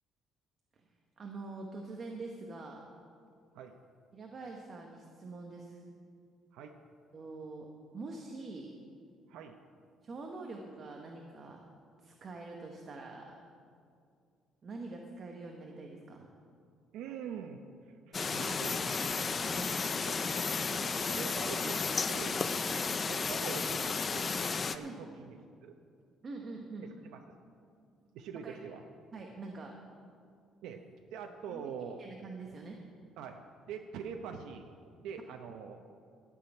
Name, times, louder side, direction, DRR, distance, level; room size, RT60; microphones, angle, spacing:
voice 1, 1.2-2.9 4.1-5.8 7.1-7.7 7.9-8.7 10.0-11.6 12.0-13.3 14.6-16.3 19.6-19.9 22.7-22.9 24.8-25.0 26.2-26.9 28.4-28.6 29.1-29.7 31.5-31.7 32.0-32.8, right 3 dB, 35° right, 1 dB, 1.0 m, -45 dB
voice 2, 9.3-9.6 16.9-19.2 20.0-20.3 20.7-21.8 22.1-22.5 23.0-25.8 26.8-27.3 28.1-28.8 30.6-30.8 31.1-32.0 33.2-33.4 33.7-34.7 35.0-35.8, right 7 dB, 90° right, 4 dB, 0.7 m, -44 dB
sound 1, 18.1-24.8, left 5 dB, 25° left, 0.4 m, -33 dB
13.0 x 6.2 x 8.9 m, 2.3 s
cardioid pair, 160°, 0 cm